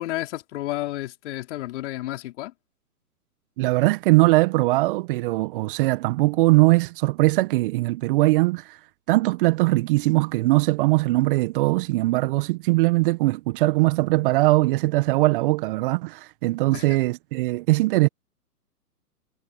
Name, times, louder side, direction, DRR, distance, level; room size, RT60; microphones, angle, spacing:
voice 1, 0.0-2.5 16.7-16.8, left 16 dB, 45° left, 5.1 m, -31 dB
voice 2, 3.6-8.8 9.1-18.1, right 21 dB, 35° right, 1.3 m, -21 dB
hypercardioid pair, 130°, 48 cm